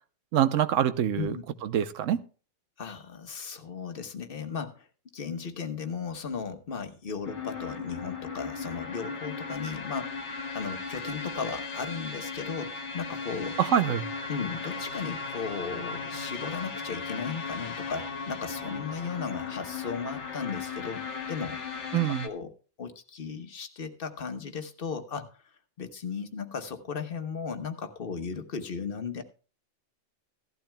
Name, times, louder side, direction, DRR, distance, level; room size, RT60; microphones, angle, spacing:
voice 1, 0.3-1.4 1.6-2.2 13.6-14.0 21.9-22.3, right 10 dB, 90° right, 13 dB, 1.1 m, -25 dB
voice 2, 2.8-4.9 5.1-10.3 10.5-13.6 14.3-22.5 22.8-25.3 25.8-29.2, left 5 dB, 50° left, 8 dB, 1.2 m, -36 dB
sound 1, 7.2-22.3, left 4 dB, 65° left, 1.4 m, -37 dB
16.0 x 12.0 x 2.2 m, 0.37 s
omnidirectional pair, 1.3 m